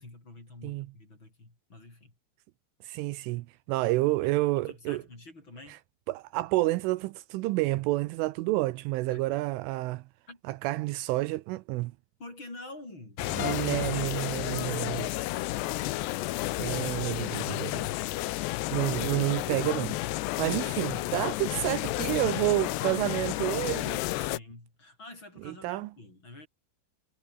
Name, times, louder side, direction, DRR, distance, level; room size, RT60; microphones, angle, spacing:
voice 1, 0.0-2.1 4.2-5.8 9.1-9.3 10.3-10.4 12.2-15.2 24.2-26.5, left 2 dB, 20° left, 7.7 m, -48 dB
voice 2, 2.8-5.0 6.1-10.0 10.5-11.9 13.4-15.1 16.6-17.9 18.7-20.0 20.4-24.0 25.5-25.9, right 19 dB, 85° right, 3.1 m, -29 dB
sound 1, 13.2-24.4, left 18 dB, 80° left, 2.5 m, -32 dB
sound 2, 13.2-16.5, left 9 dB, 55° left, 3.9 m, -40 dB
omnidirectional pair, 5.9 m